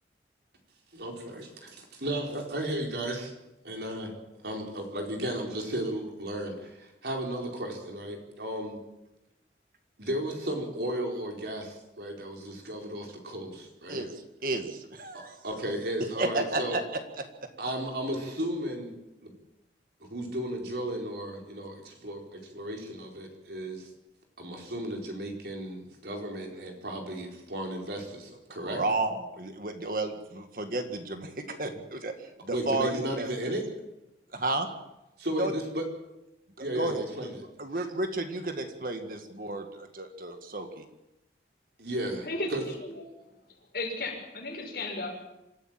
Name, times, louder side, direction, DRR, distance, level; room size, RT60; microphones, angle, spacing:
voice 1, 0.9-3.3 3.6-4.1 4.4-8.8 10.0-14.0 15.1-16.8 17.6-18.9 19.2-19.3 20.0-23.9 24.4-28.8 32.5-33.6 35.2-35.9 36.6-37.4 37.8-37.9 41.8-42.6, right 1 dB, 70° right, 1 dB, 4.5 m, -34 dB
voice 2, 14.4-15.3 16.2-16.8 28.6-32.1 32.4-33.6 34.3-34.7 35.4-35.5 36.6-37.0 37.6-40.8, right 2 dB, 50° right, 6 dB, 1.9 m, -32 dB
voice 3, 43.7-45.2, left 2 dB, 55° left, 0 dB, 6.6 m, -34 dB
26.0 x 14.5 x 7.6 m, 0.93 s
head